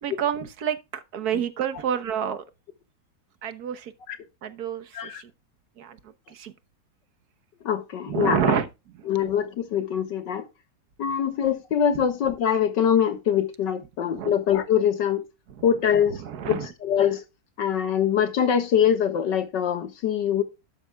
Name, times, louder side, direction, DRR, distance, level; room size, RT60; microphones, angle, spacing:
voice 1, 0.0-2.4 3.4-3.9 4.4-5.3 5.8-6.0 6.3-6.5 8.1-8.7 14.1-14.3 16.2-16.7, right 8 dB, 60° right, 1.4 m, -28 dB
voice 2, 7.6-8.6 9.1-10.5 11.0-15.3 15.6-16.2 16.5-17.2 17.6-20.4, left 8 dB, 75° left, 2.1 m, -23 dB
11.5 x 11.0 x 2.3 m
omnidirectional pair, 1.9 m